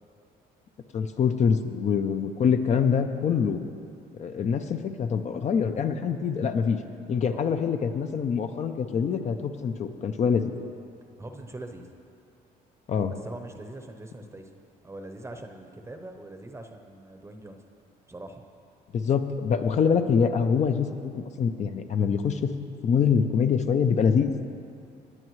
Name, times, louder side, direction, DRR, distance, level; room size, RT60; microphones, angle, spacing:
voice 1, 0.9-3.6 4.2-6.8 7.1-10.5 12.9-13.1 18.9-20.9 21.1-22.5 22.8-24.5, left 6 dB, 45° left, 7 dB, 0.6 m, -25 dB
voice 2, 11.2-11.9 13.1-14.5 14.8-17.6 18.1-18.4, right 2 dB, 15° right, 5 dB, 0.8 m, -42 dB
19.5 x 8.6 x 3.2 m, 2.4 s
cardioid pair, 110°, 17 cm